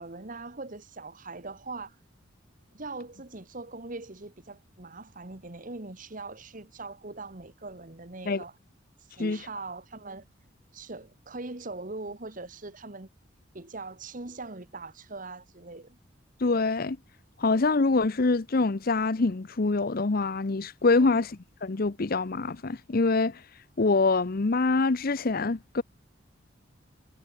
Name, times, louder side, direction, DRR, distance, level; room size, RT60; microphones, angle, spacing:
voice 1, 0.0-1.9 2.7-8.6 9.2-10.2 10.7-13.1 13.5-16.0 21.0-21.2, right 3 dB, 40° right, 1.6 m, -41 dB
voice 2, 16.4-17.0 17.4-21.3 21.6-23.4 23.8-25.8, left 3 dB, 50° left, 0.7 m, -25 dB
head